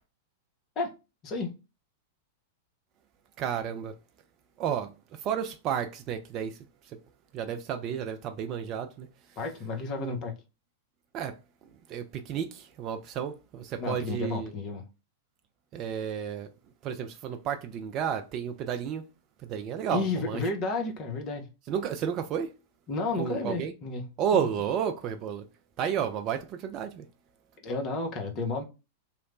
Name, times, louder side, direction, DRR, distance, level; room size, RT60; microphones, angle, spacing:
voice 1, 1.2-1.6 9.4-10.3 13.8-14.8 19.9-21.5 22.9-24.0 24.3-24.5 27.6-28.6, left 3 dB, 35° left, 0.6 m, -32 dB
voice 2, 3.4-3.9 4.6-4.9 5.2-6.6 7.3-9.1 10.0-10.2 11.1-11.3 11.9-14.5 15.7-16.5 16.8-19.1 19.5-20.4 21.7-22.5 23.2-23.7 24.2-25.4 25.8-27.0, right 8 dB, 35° right, 0.3 m, -31 dB
3.0 x 2.1 x 2.4 m
figure-of-eight pair, 95°, 0 cm